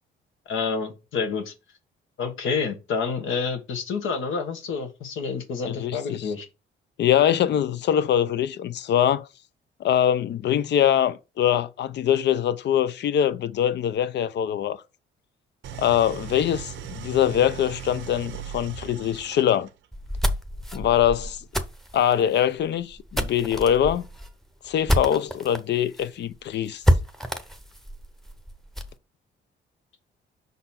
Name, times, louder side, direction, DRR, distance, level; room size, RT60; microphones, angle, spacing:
voice 1, 0.5-1.5 2.2-6.5, left 5 dB, 75° left, 1.4 m, -28 dB
voice 2, 5.7-6.3 7.0-9.3 9.8-14.8 15.8-19.7 20.7-21.4 21.9-24.0 24.6-26.8, left 10 dB, 60° left, 0.6 m, -23 dB
Idling, 15.6-19.9, right 9 dB, 70° right, 0.7 m, -38 dB
sound 1, 19.9-25.6 26.0-26.1 26.3-26.4 26.8-29.0, equal, ahead, 0.8 m, -27 dB
5.5 x 4.1 x 4.3 m
cardioid pair, 90°, 20 cm